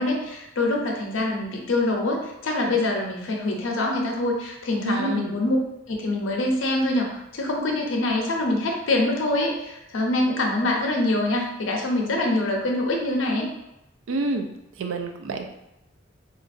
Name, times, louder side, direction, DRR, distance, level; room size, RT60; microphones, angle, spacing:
voice 1, 0.0-5.6 5.9-13.5, left 2 dB, 75° left, 0 dB, 0.6 m, -25 dB
voice 2, 4.8-5.4 14.1-14.5 14.8-15.5, right 3 dB, 80° right, 5 dB, 0.4 m, -28 dB
2.8 x 2.5 x 2.4 m, 0.91 s
head